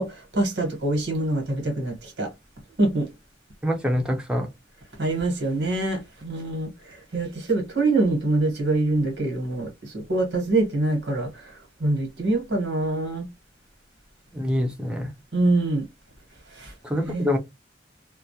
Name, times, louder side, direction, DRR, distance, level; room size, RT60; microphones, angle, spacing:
voice 1, 0.0-2.3 2.8-3.1 5.0-11.5 11.8-13.3 15.3-15.8 16.6-16.7 17.0-17.3, right 2 dB, 90° right, 1.1 m, -25 dB
voice 2, 3.6-4.5 14.3-15.1 16.8-17.4, left 1 dB, 5° right, 0.6 m, -25 dB
2.3 x 2.0 x 2.7 m
head